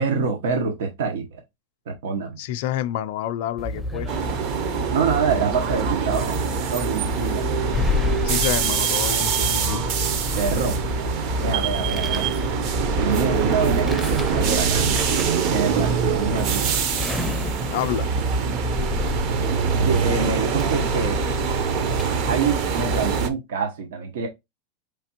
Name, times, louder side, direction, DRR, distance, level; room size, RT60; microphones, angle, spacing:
voice 1, 0.0-1.4 1.9-2.4 4.9-6.4 6.7-7.4 10.3-10.8 11.4-12.3 13.0-14.9 15.5-16.7 19.7-21.2 22.0-24.3, right 5 dB, 80° right, 0.9 m, -26 dB
voice 2, 2.4-4.1 8.2-9.8 17.7-18.1, left 12 dB, 60° left, 0.4 m, -28 dB
sound 1, 3.6-23.3, left 2 dB, ahead, 0.5 m, -29 dB
sound 2, 4.1-23.3, right 7 dB, 45° right, 0.7 m, -24 dB
4.8 x 3.3 x 2.8 m
supercardioid pair, 150°, 0 cm